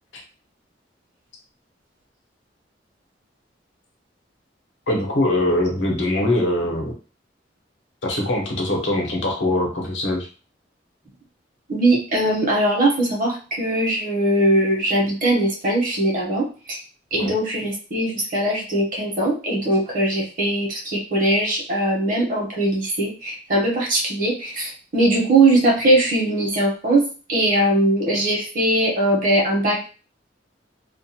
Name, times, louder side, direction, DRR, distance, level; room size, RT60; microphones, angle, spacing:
voice 1, 4.9-6.9 8.0-10.3 17.1-17.3, left 1 dB, 85° left, 0 dB, 0.8 m, -22 dB
voice 2, 11.7-16.8 17.1-27.0 27.3-29.9, right 1 dB, 50° right, -2 dB, 0.9 m, -20 dB
2.4 x 2.3 x 2.7 m, 0.36 s
head